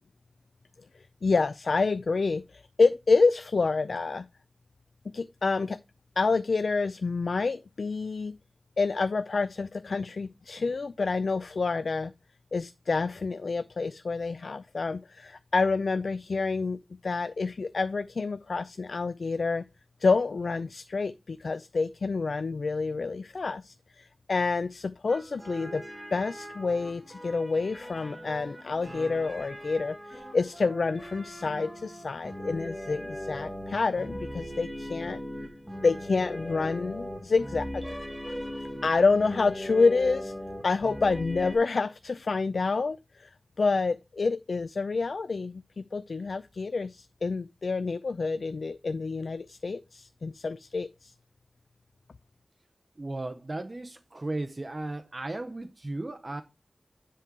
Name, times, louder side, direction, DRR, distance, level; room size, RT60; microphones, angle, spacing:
voice 1, 1.2-4.3 5.1-5.8 6.2-8.3 8.8-12.1 12.5-19.6 20.0-25.8 26.1-35.2 35.8-37.9 38.8-40.3 40.6-43.3 43.6-51.1, left 4 dB, 70° left, 0.4 m, -28 dB
sound 1, 25.1-41.6, equal, 5° right, 1.6 m, -39 dB
voice 2, 53.0-56.4, right 2 dB, 35° right, 0.6 m, -35 dB
9.9 x 3.7 x 4.6 m
wide cardioid pair, 95°, 0 cm